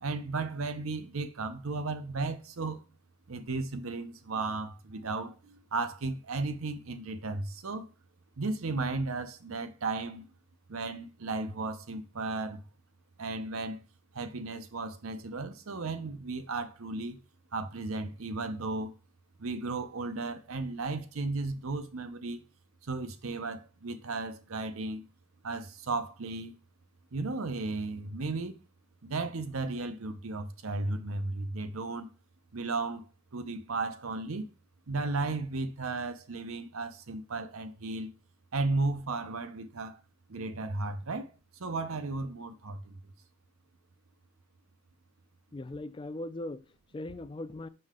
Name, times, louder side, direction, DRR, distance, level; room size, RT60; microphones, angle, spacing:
voice 1, 0.0-2.8 3.3-7.9 8.4-10.3 10.7-12.6 13.2-13.8 14.1-17.2 17.5-18.9 19.4-22.4 22.9-25.0 25.4-26.5 27.1-28.6 29.0-32.1 32.5-33.0 33.3-34.5 34.9-38.1 38.5-40.0 40.3-41.3 41.6-42.9, right 3 dB, 85° right, 0.8 m, -34 dB
voice 2, 45.5-47.7, left 1 dB, 25° left, 0.3 m, -39 dB
5.5 x 5.4 x 3.7 m
head